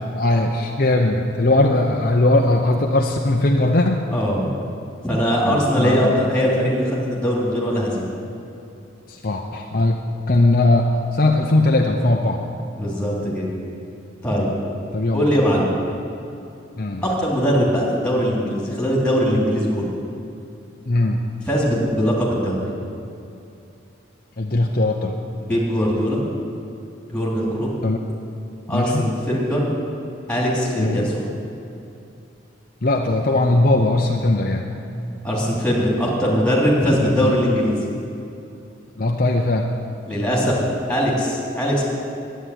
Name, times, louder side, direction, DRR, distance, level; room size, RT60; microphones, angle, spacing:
voice 1, 0.1-4.0 5.5-6.1 9.1-10.0 10.3-12.4 14.9-15.3 16.8-17.0 20.9-21.2 24.4-25.2 27.8-28.0 28.7-29.1 30.8-31.1 32.8-34.7 37.0-37.4 39.0-39.7, left 2 dB, 45° left, 1 dB, 0.7 m, -19 dB
voice 2, 4.1-4.5 5.0-8.1 12.8-13.5 14.2-14.5 15.1-15.7 17.0-19.9 21.5-22.6 25.4-26.2 27.1-27.7 28.7-29.7 30.3-31.1 35.2-37.8 40.1-41.8, equal, 5° left, -5 dB, 3.2 m, -21 dB
11.0 x 9.1 x 10.0 m, 2.7 s
head